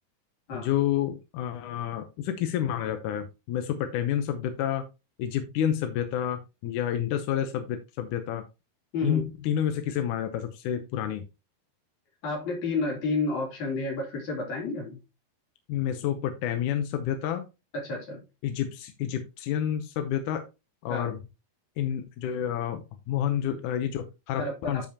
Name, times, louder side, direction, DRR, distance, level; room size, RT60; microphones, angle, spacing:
voice 1, 0.5-4.8 5.2-8.4 9.0-11.3 15.7-17.5 18.4-20.4 20.8-21.2 21.8-24.9, left 10 dB, 75° left, 7 dB, 2.0 m, -29 dB
voice 2, 8.9-9.2 12.2-15.0 17.7-18.2 20.9-21.1 24.4-24.9, left 3 dB, 55° left, -1 dB, 4.4 m, -30 dB
12.0 x 5.4 x 2.8 m, 0.26 s
omnidirectional pair, 4.3 m